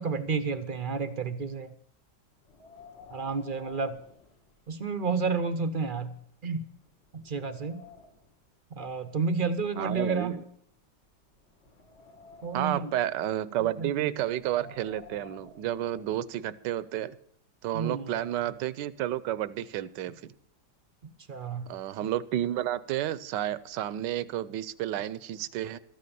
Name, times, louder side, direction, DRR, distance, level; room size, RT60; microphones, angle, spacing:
voice 1, 0.0-1.7 3.1-4.0 4.7-6.2 6.4-6.7 7.1-7.8 8.8-10.4 12.4-12.9 13.8-13.9 17.7-18.2 21.0-21.7, right 4 dB, 50° right, 10 dB, 0.6 m, -31 dB
Wind, 2.4-5.0 5.4-5.5 6.2-6.3 6.7-8.4 9.2-10.7 11.3-12.9 14.2-16.3, left 4 dB, 75° left, 2.5 m, -53 dB
voice 2, 9.8-10.4 12.5-17.1 17.6-20.3 21.7-25.8, right 12 dB, 75° right, 17 dB, 1.3 m, -31 dB
13.5 x 9.4 x 6.9 m, 0.67 s
omnidirectional pair, 1.9 m